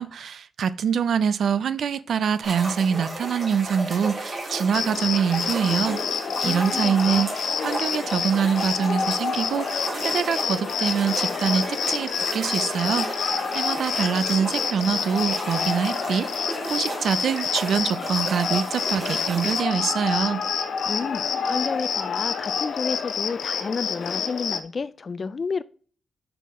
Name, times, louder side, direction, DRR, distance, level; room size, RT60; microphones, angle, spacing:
voice 1, 0.0-6.0 6.4-20.4, right 7 dB, 75° right, 0.4 m, -25 dB
sound 1, 2.4-19.6, right 2 dB, 45° right, 3.0 m, -34 dB
Cricket, 4.7-24.6, left 6 dB, 70° left, 0.7 m, -28 dB
voice 2, 6.4-7.2 20.9-25.6, left 5 dB, 40° left, 0.3 m, -31 dB
5.8 x 5.6 x 3.6 m
wide cardioid pair, 120°, 0 cm